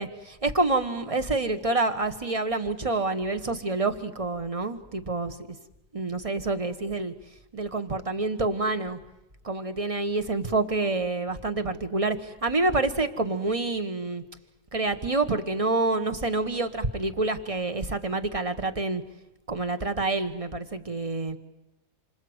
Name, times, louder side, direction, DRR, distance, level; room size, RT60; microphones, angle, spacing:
voice 1, 0.0-5.4 5.9-7.1 7.5-9.0 9.4-14.2 14.7-19.0 19.5-21.4, right 2 dB, 20° right, 9 dB, 1.3 m, -27 dB
28.0 x 25.0 x 8.1 m, 0.97 s
omnidirectional pair, 1.7 m